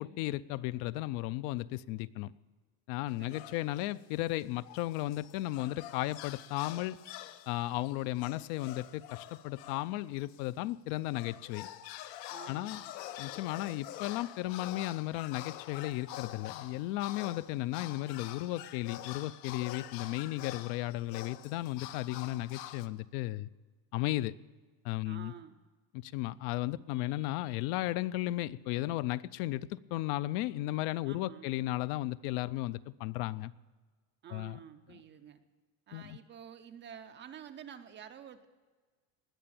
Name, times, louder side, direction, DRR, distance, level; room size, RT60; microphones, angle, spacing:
voice 1, 0.0-2.3 2.9-7.0 7.5-11.7 12.5-12.8 13.2-23.5 23.9-24.3 24.8-25.3 25.9-33.5 34.3-34.6 35.9-36.2, left 16 dB, 65° left, 0.6 m, -35 dB
sound 1, 3.1-4.0 4.4-10.5 10.9-22.9, left 13 dB, 85° left, 1.0 m, -46 dB
voice 2, 3.2-3.7 12.3-12.9 25.0-25.6 31.1-31.5 34.2-35.4 35.9-38.5, right 8 dB, 25° right, 0.4 m, -50 dB
19.5 x 6.8 x 8.7 m
cardioid pair, 160°, 49 cm